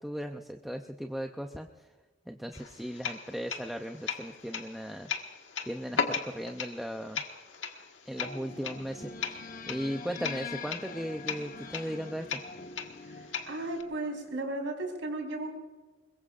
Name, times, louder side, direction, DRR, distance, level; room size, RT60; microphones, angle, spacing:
voice 1, 0.0-1.9 2.3-5.1 5.6-7.2 8.1-12.4, equal, ahead, 4 dB, 0.6 m, -37 dB
sound 1, 2.5-13.8, left 6 dB, 80° left, 1.6 m, -38 dB
sound 2, 8.1-14.3, left 3 dB, 50° left, 1.1 m, -45 dB
voice 2, 13.1-15.5, right 2 dB, 90° right, 2 dB, 4.2 m, -35 dB
22.0 x 22.0 x 2.5 m, 1.4 s
head